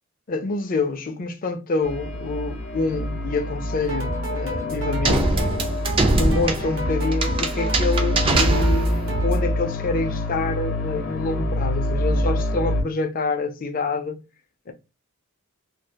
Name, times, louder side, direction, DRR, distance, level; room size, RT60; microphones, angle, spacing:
voice 1, 0.3-5.4 6.0-14.2 14.7-14.8, left 3 dB, 40° left, 0.4 m, -27 dB
sound 1, 1.8-12.8, left 1 dB, 70° left, 0.8 m, -26 dB
sound 2, 3.8-9.5, right 2 dB, 65° right, 0.8 m, -32 dB
sound 3, 5.0-9.1, right 2 dB, 25° right, 0.4 m, -23 dB
2.3 x 2.2 x 2.7 m
head